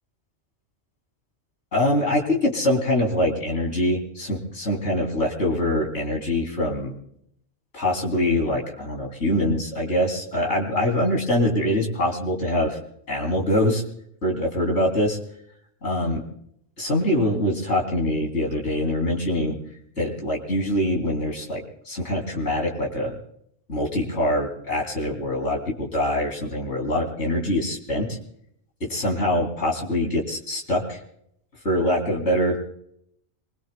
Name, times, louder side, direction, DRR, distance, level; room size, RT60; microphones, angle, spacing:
voice 1, 1.7-6.9 7.7-12.8 13.1-13.8 14.2-15.2 15.8-16.2 16.8-19.6 20.0-23.2 23.7-28.2 28.8-31.0 31.6-32.6, left 1 dB, 70° left, 0 dB, 3.6 m, -24 dB
26.0 x 22.0 x 2.2 m, 0.72 s
omnidirectional pair, 1.2 m